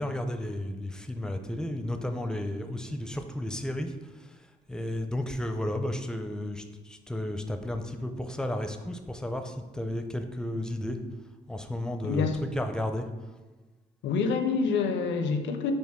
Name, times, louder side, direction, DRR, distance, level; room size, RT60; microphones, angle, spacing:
voice 1, 0.0-11.0 11.5-13.1, left 1 dB, 5° left, 6 dB, 0.4 m, -33 dB
voice 2, 12.0-12.4 14.0-15.7, left 5 dB, 70° left, 6 dB, 0.5 m, -27 dB
4.5 x 2.6 x 3.5 m, 1.2 s
supercardioid pair, 55°, 20 cm